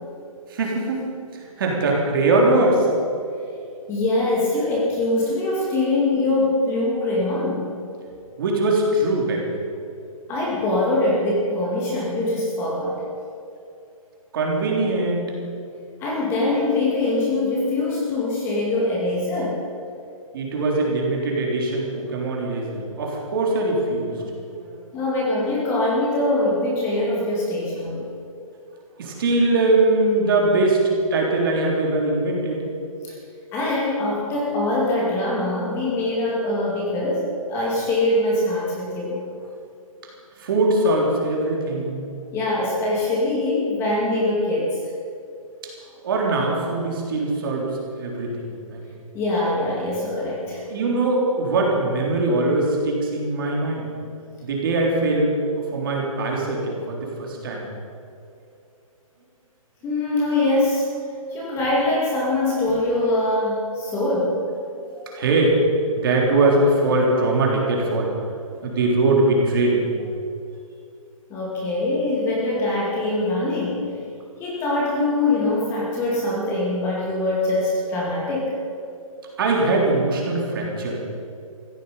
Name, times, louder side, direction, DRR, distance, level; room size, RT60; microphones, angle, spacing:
voice 1, 0.5-2.9 8.4-9.5 14.3-15.4 20.3-24.8 29.0-32.7 40.4-42.2 46.0-49.0 50.6-53.9 54.4-57.6 64.7-64.8 65.1-65.6 66.0-68.1 68.6-70.0 79.4-81.0, right 2 dB, 40° right, -1 dB, 3.6 m, -22 dB
voice 2, 3.9-7.7 10.3-13.0 16.0-19.6 24.9-28.0 33.0-33.1 33.5-39.2 42.3-44.8 49.1-50.6 59.8-60.9 61.3-64.4 65.0-65.1 71.3-73.9 74.4-78.5, left 2 dB, 15° left, -4 dB, 2.3 m, -23 dB
16.5 x 15.5 x 5.5 m, 2.5 s
hypercardioid pair, 170°, 18 cm